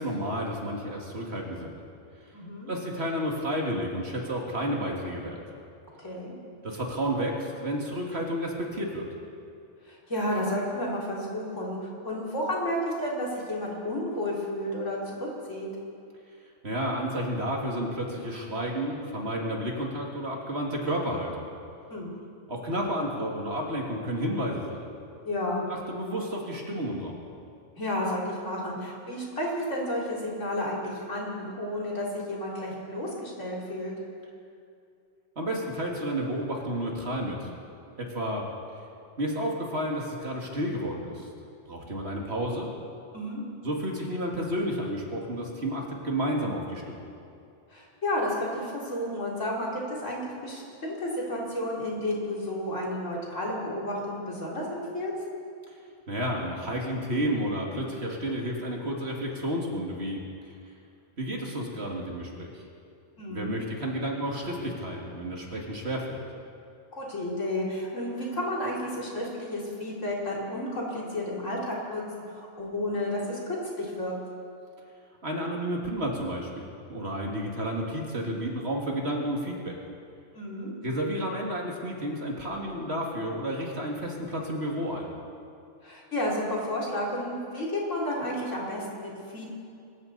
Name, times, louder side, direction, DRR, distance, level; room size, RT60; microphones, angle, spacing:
voice 1, 0.0-1.7 2.7-5.4 6.6-9.1 16.6-21.5 22.5-24.8 25.7-27.2 35.4-37.5 38.0-38.5 39.2-41.3 41.7-42.7 43.6-47.0 55.7-55.8 56.1-60.2 61.2-62.5 63.3-66.2 75.2-79.8 80.8-85.1, equal, 55° right, -1 dB, 2.5 m, -31 dB
voice 2, 2.3-2.7 6.0-6.3 9.8-15.7 21.9-22.1 25.3-25.6 27.8-33.9 43.1-43.4 47.7-55.1 63.2-63.5 66.9-74.1 80.3-80.7 85.8-89.5, left 1 dB, 75° left, -4 dB, 3.8 m, -32 dB
25.0 x 14.0 x 4.2 m, 2.5 s
omnidirectional pair, 1.3 m